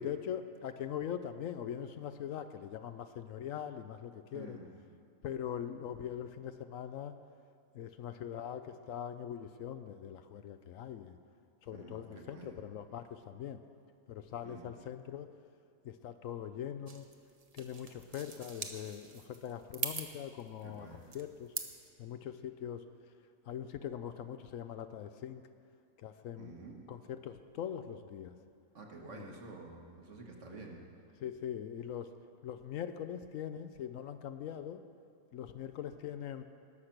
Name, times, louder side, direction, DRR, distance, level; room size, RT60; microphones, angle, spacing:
voice 1, 0.0-4.6 5.2-7.1 7.7-11.2 11.6-13.6 14.1-15.3 15.8-17.1 17.5-21.5 22.0-22.8 23.5-25.4 26.0-26.5 26.9-28.3 29.1-29.3 31.2-32.1 32.4-34.8 35.3-36.4, left 9 dB, 70° left, 10 dB, 0.9 m, -42 dB
voice 2, 4.3-4.7 11.7-12.6 14.4-14.7 20.6-21.1 26.4-26.8 28.7-30.9, right 3 dB, 55° right, 0 dB, 1.7 m, -49 dB
sound 1, 16.9-21.9, right 4 dB, 30° right, 0.8 m, -43 dB
19.5 x 6.6 x 5.9 m, 2.4 s
omnidirectional pair, 1.5 m